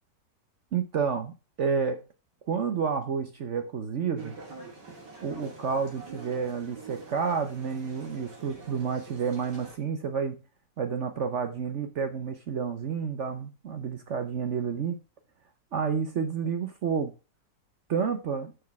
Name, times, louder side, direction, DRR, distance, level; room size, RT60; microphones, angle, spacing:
voice 1, 0.7-2.0 2.5-4.3 5.2-10.4 10.8-15.0 15.7-17.1 17.9-18.5, right 6 dB, 55° right, 8 dB, 0.9 m, -30 dB
sound 1, 4.2-9.8, right 3 dB, 75° right, 3.4 m, -45 dB
6.3 x 6.3 x 5.8 m, 0.32 s
omnidirectional pair, 1.9 m